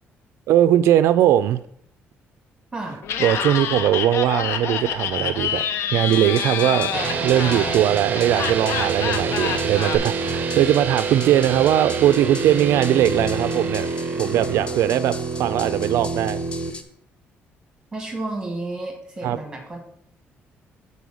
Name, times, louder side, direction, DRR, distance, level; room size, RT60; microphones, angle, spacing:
voice 1, 0.5-1.6 3.2-5.6 5.9-13.9 14.2-16.4 19.2-19.4, right 12 dB, 80° right, 13 dB, 0.3 m, -20 dB
Laughter, 3.0-10.0, left 8 dB, 70° left, 0.6 m, -27 dB
sound 1, 6.0-16.8, left 3 dB, 25° left, 0.6 m, -40 dB
sound 2, 6.9-16.7, right 5 dB, 35° right, 0.6 m, -26 dB
voice 2, 17.9-19.8, right 2 dB, 10° right, 2 dB, 1.7 m, -31 dB
7.0 x 4.1 x 6.2 m, 0.70 s
cardioid pair, 170°, 5 cm